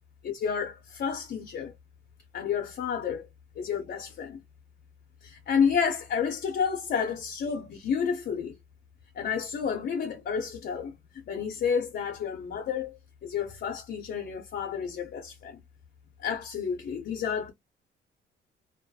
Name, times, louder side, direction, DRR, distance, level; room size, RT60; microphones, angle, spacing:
voice 1, 0.2-1.7 2.3-3.2 3.6-4.4 5.2-8.5 9.2-10.9 11.3-15.6 16.2-17.5, left 7 dB, 55° left, 0.6 m, -30 dB
2.3 x 2.1 x 2.6 m
cardioid pair, 90°, 20 cm